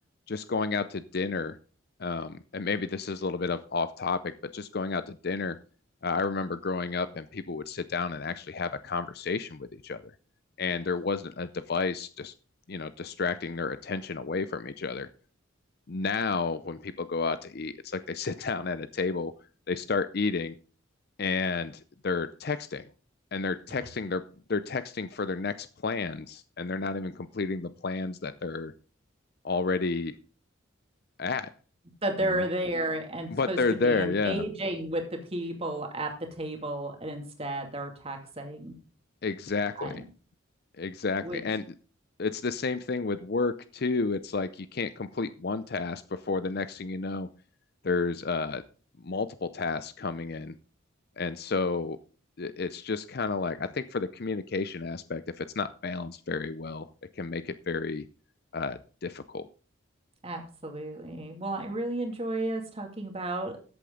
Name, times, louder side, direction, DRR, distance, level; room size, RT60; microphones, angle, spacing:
voice 1, 0.3-1.6 2.0-5.6 6.0-10.1 10.6-12.3 12.7-15.1 15.9-19.3 19.7-20.6 21.2-22.8 23.3-28.7 29.4-30.2 31.2-31.5 32.4-32.5 33.3-34.4 39.2-40.0 40.8-41.6 42.2-47.3 47.8-48.6 49.0-50.6 51.2-52.0 52.4-56.9 57.2-58.1 58.5-59.5, left 4 dB, 50° left, 13 dB, 0.6 m, -31 dB
voice 2, 32.0-38.7 39.8-40.1 41.2-41.4 60.2-63.6, right 1 dB, 30° right, 3 dB, 2.4 m, -33 dB
13.5 x 8.4 x 3.8 m, 0.38 s
head